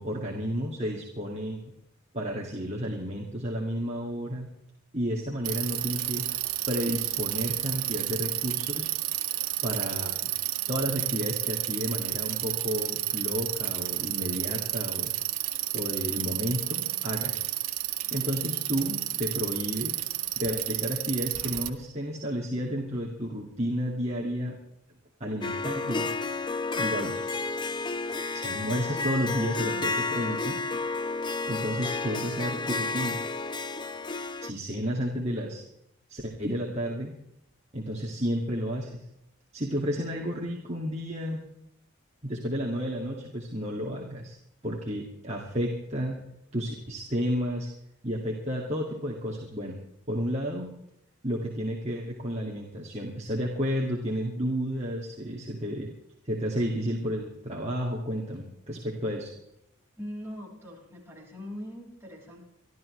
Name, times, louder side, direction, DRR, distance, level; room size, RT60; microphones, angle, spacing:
voice 1, 0.0-1.6 2.1-4.5 4.9-6.3 6.7-8.9 9.6-10.3 10.7-15.1 15.7-17.4 18.1-20.0 20.4-24.6 25.2-26.1 26.8-27.2 28.3-30.6 31.5-33.2 34.4-35.6 36.1-37.1 37.7-39.0 39.5-41.4 42.2-44.4 44.6-46.2 46.5-47.7 48.0-49.8 50.1-50.7 51.2-55.9 56.2-59.3, equal, 30° right, -2 dB, 2.3 m, -31 dB
Bicycle, 5.4-21.7, right 14 dB, 85° right, 1.5 m, -31 dB
Harp, 25.4-34.5, left 3 dB, 20° left, 0.6 m, -31 dB
voice 2, 60.0-62.4, equal, 10° right, -5 dB, 5.8 m, -41 dB
26.0 x 13.0 x 3.3 m, 0.79 s
head